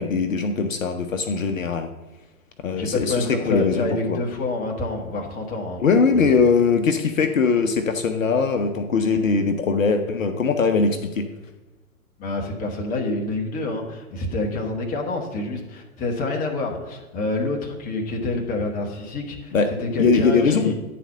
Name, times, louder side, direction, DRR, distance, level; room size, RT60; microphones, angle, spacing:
voice 1, 0.0-1.9 2.6-4.2 5.8-11.3 19.5-19.7 20.0-20.7, left 5 dB, 60° left, 7 dB, 0.8 m, -21 dB
voice 2, 2.7-6.3 12.2-19.5 19.8-20.8, left 2 dB, 20° left, 1 dB, 1.2 m, -27 dB
10.0 x 4.2 x 5.6 m, 1.1 s
figure-of-eight pair, 115°, 44 cm